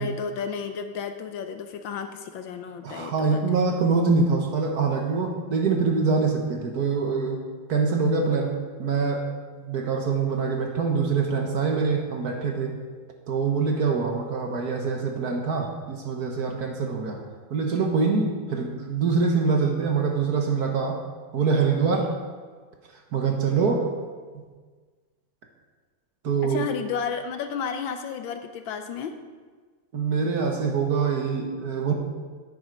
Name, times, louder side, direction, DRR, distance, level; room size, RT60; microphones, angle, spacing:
voice 1, 0.0-3.6 26.4-29.2, left 6 dB, 75° left, 7 dB, 1.4 m, -32 dB
voice 2, 2.8-8.5 8.8-9.3 9.5-12.8 13.3-17.2 17.5-21.0 21.3-22.1 23.1-23.9 24.3-24.4 26.2-26.7 29.9-31.9, right 4 dB, 55° right, 2 dB, 1.4 m, -24 dB
9.8 x 7.8 x 5.1 m, 1.5 s
omnidirectional pair, 2.3 m